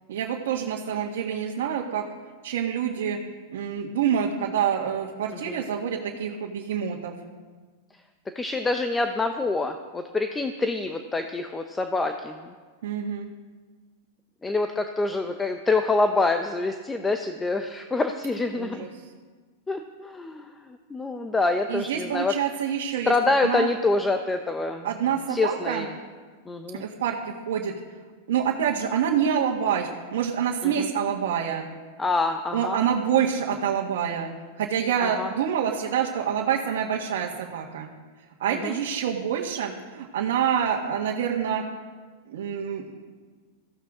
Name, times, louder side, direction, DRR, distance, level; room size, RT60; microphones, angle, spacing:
voice 1, 0.1-2.0 2.4-3.2 3.5-7.1 12.8-13.3 18.5-18.9 21.7-23.1 23.4-23.7 24.8-25.9 26.8-27.7 28.3-31.7 32.5-34.3 34.6-37.9 38.4-41.6 42.3-43.0, right 8 dB, 80° right, -2 dB, 1.7 m, -27 dB
voice 2, 8.3-12.5 14.4-18.9 19.7-22.3 23.0-24.9 25.3-25.9 26.5-26.8 30.6-30.9 32.0-32.8 35.0-35.3 38.5-38.8, left 3 dB, 10° left, 6 dB, 0.8 m, -26 dB
17.5 x 15.0 x 3.8 m, 1.5 s
supercardioid pair, 145°, 0 cm